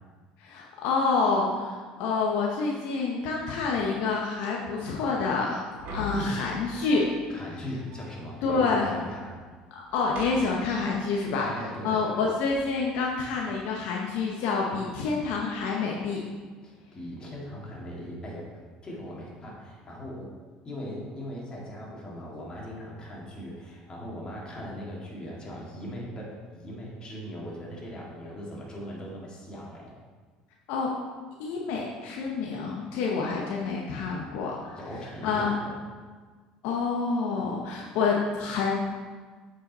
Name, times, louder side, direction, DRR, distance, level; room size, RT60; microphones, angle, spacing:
voice 1, 0.4-5.6 5.9-7.1 8.4-8.9 9.7-11.5 11.8-16.2 30.7-30.9 31.4-34.8 35.2-35.5 36.6-38.7, left 4 dB, 75° left, -1 dB, 0.9 m, -28 dB
sound 1, 5.7-7.3 7.6-7.7 7.9-8.9 9.2-9.5 9.9-11.3 12.5-12.9, left 2 dB, 65° right, 2.4 m, -42 dB
voice 2, 7.3-9.3 11.4-12.2 16.6-18.5 18.8-20.3 20.6-29.9 34.7-35.7, equal, 30° left, -4 dB, 2.4 m, -39 dB
8.0 x 5.4 x 4.2 m, 1.5 s
supercardioid pair, 90°, 3 cm